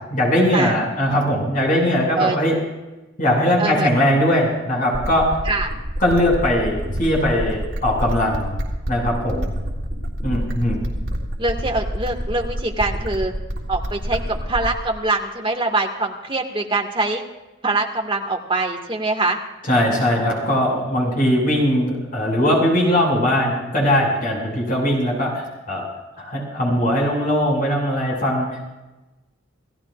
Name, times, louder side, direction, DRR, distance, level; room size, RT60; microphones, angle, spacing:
voice 1, 0.1-2.6 3.2-5.3 6.0-8.5 8.9-9.5 10.2-10.8 19.7-25.9 26.2-28.6, equal, 45° left, -1 dB, 5.9 m, -20 dB
sound 1, 4.9-14.9, equal, 75° right, 3.5 m, -27 dB
voice 2, 11.4-13.3 13.7-17.2 17.6-19.4, right 2 dB, 25° right, 2 dB, 1.8 m, -23 dB
28.5 x 16.0 x 2.5 m, 1.1 s
head